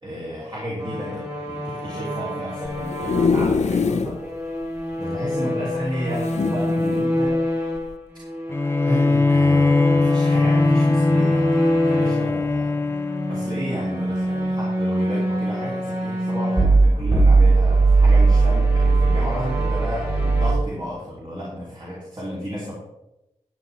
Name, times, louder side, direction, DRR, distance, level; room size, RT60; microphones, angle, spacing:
voice 1, 0.0-4.2 5.0-7.4 8.8-13.0 13.3-22.7, equal, 40° right, -6 dB, 3.1 m, -32 dB
sound 1, 0.8-7.9 8.2-12.3 12.9-20.5, right 2 dB, 25° right, 3.6 m, -22 dB
sound 2, 2.6-4.2 4.6-4.7 4.9-5.0 6.1-7.1 7.8-7.9, left 5 dB, 70° left, 0.6 m, -23 dB
Bowed string instrument, 8.5-14.0, left 3 dB, 20° left, 0.4 m, -21 dB
11.5 x 8.9 x 3.5 m, 0.94 s
wide cardioid pair, 70°, 12 cm